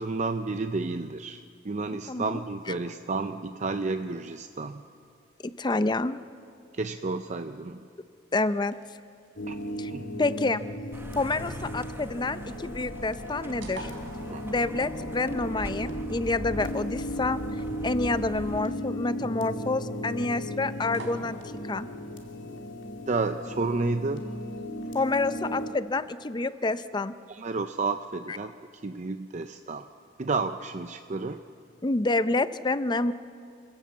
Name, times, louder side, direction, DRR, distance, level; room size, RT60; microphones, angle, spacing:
voice 1, 0.0-4.8 6.7-7.9 9.5-9.6 9.9-10.0 14.3-14.4 23.1-24.3 27.3-28.5 28.8-29.9 30.2-31.4, right 3 dB, 40° right, 8 dB, 0.6 m, -31 dB
voice 2, 2.1-2.4 5.4-6.2 8.3-8.7 9.8-9.9 10.2-10.6 11.2-13.9 14.4-17.4 17.8-21.4 21.7-21.9 24.9-27.1 31.8-33.1, left 2 dB, 25° left, 13 dB, 0.5 m, -28 dB
sound 1, 7.8-27.5, right 2 dB, 85° right, 3.6 m, -53 dB
sound 2, 9.4-25.7, equal, 75° left, 2.5 m, -36 dB
sound 3, 10.9-18.6, equal, 10° right, 0.9 m, -41 dB
28.0 x 16.0 x 7.2 m, 2.4 s
head